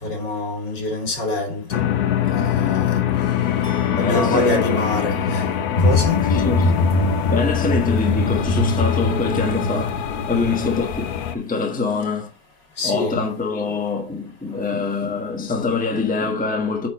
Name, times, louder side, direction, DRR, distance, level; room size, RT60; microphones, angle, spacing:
voice 1, 0.0-1.9 2.3-3.0 4.0-5.5 5.8-6.3 10.3-10.8 12.8-13.3, left 2 dB, 85° left, 3.1 m, -26 dB
sound 1, 1.7-11.3, left 9 dB, 65° left, 1.1 m, -24 dB
sound 2, 3.6-5.8, right 2 dB, 10° right, 1.4 m, -45 dB
voice 2, 3.9-4.8 6.3-6.7 7.2-12.3 12.8-16.9, left 4 dB, 5° left, 1.1 m, -24 dB
sound 3, 5.8-11.3, left 2 dB, 35° left, 0.8 m, -22 dB
9.1 x 4.2 x 4.2 m
omnidirectional pair, 1.9 m